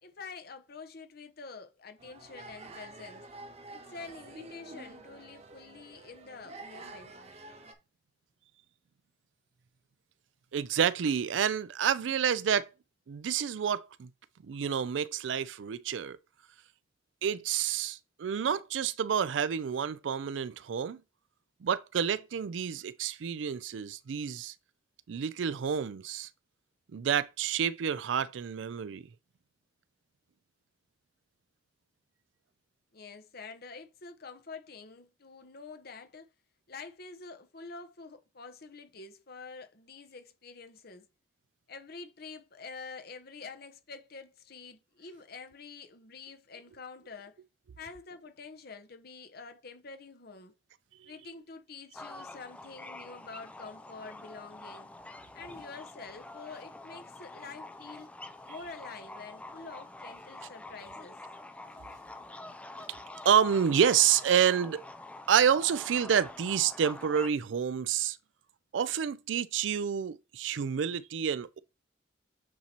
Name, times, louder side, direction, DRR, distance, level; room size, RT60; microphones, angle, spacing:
voice 1, 0.0-3.3 3.7-7.1 32.9-36.3 36.7-41.1 41.7-47.4 47.8-50.5 51.0-54.9 55.3-58.1 58.5-61.2, left 4 dB, 55° left, 1.0 m, -47 dB
sound 1, 2.0-7.7, right 2 dB, 35° right, 0.9 m, -48 dB
voice 2, 10.5-12.7 13.1-14.1 14.4-16.2 17.2-21.0 21.6-24.5 25.1-26.3 26.9-29.0 63.2-64.9 65.3-68.2 68.7-71.6, right 8 dB, 70° right, 0.4 m, -28 dB
sound 2, 51.9-67.3, left 2 dB, 5° left, 0.5 m, -46 dB
8.3 x 3.0 x 4.2 m
head